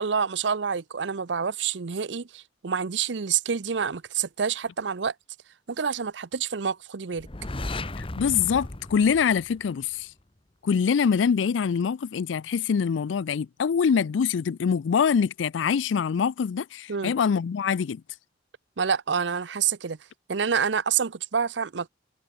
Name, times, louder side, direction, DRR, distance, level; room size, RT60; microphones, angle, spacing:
voice 1, 0.0-5.1 5.7-7.3 16.9-17.1 18.8-20.0 20.3-21.9, right 6 dB, 70° right, 0.7 m, -27 dB
sound 1, 7.2-10.0, left 2 dB, 30° left, 1.2 m, -35 dB
voice 2, 8.2-10.1 10.6-18.0, left 6 dB, 90° left, 0.4 m, -24 dB
head